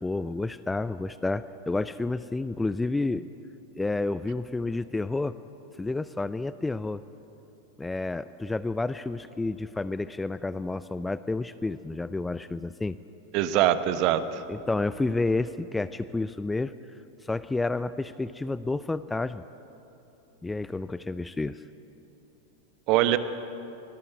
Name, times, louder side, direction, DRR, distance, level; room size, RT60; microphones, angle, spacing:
voice 1, 0.0-3.3 3.8-5.4 5.8-7.0 7.8-13.0 14.5-16.7 17.2-19.4 20.4-21.6, left 2 dB, 10° left, 15 dB, 0.5 m, -30 dB
voice 2, 13.3-14.4 22.9-23.2, right 12 dB, 40° right, 12 dB, 1.2 m, -23 dB
24.0 x 19.5 x 9.2 m, 3.0 s
figure-of-eight pair, 90°, 0 cm